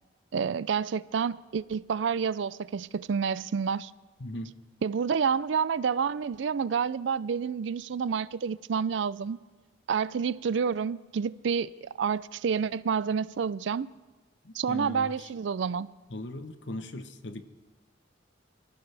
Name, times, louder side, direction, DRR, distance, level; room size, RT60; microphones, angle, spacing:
voice 1, 0.3-3.9 4.8-9.4 9.9-13.9 14.5-15.9, right 6 dB, 75° right, 0.4 m, -29 dB
voice 2, 4.2-4.5 14.4-15.1 16.1-17.4, left 1 dB, 70° left, 1.0 m, -38 dB
24.0 x 15.0 x 3.4 m
head